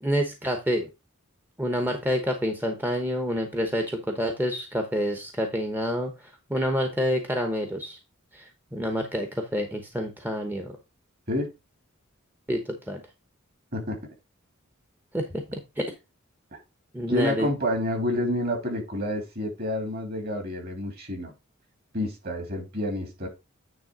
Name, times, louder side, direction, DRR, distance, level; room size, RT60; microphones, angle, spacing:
voice 1, 0.0-0.9 1.6-8.0 8.3-10.8 12.5-13.0 15.1-15.4 15.8-15.9 16.9-17.5, equal, 10° right, 4 dB, 0.9 m, -28 dB
voice 2, 17.1-21.3 21.9-23.3, left 1 dB, 50° right, 2 dB, 2.8 m, -29 dB
9.4 x 3.4 x 4.8 m, 0.26 s
head